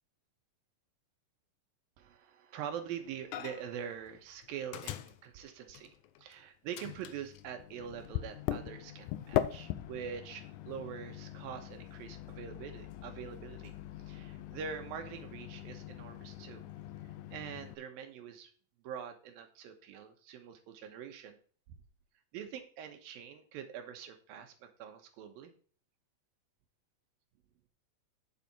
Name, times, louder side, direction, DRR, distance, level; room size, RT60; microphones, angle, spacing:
voice 1, 2.0-13.7 14.0-16.7 17.3-18.5 18.8-21.4 22.3-25.5, right 8 dB, 80° right, 6 dB, 2.9 m, -44 dB
Microwave oven, 3.3-3.8 4.1-6.3 6.7-17.8, left 13 dB, 80° left, 1.8 m, -41 dB
8.4 x 7.6 x 4.2 m, 0.42 s
omnidirectional pair, 4.2 m